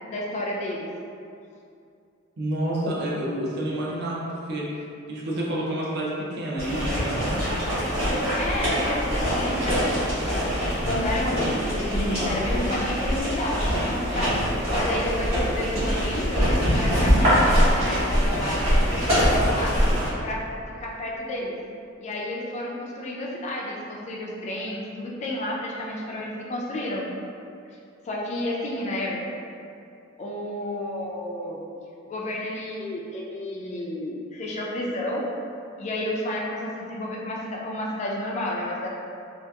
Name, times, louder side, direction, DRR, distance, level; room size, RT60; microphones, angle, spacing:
voice 1, 0.1-0.9 8.2-10.4 10.8-14.5 14.7-19.8 20.2-20.4 20.8-21.6 22.0-27.1 28.0-29.3 30.2-31.6 32.0-35.3 35.8-38.9, left 1 dB, 35° left, -3 dB, 0.3 m, -31 dB
voice 2, 2.4-4.7 5.1-7.3, right 1 dB, 55° right, -5 dB, 0.5 m, -29 dB
sound 1, 6.6-20.1, equal, 30° right, 1.2 m, -23 dB
2.7 x 2.3 x 2.2 m, 2.5 s
head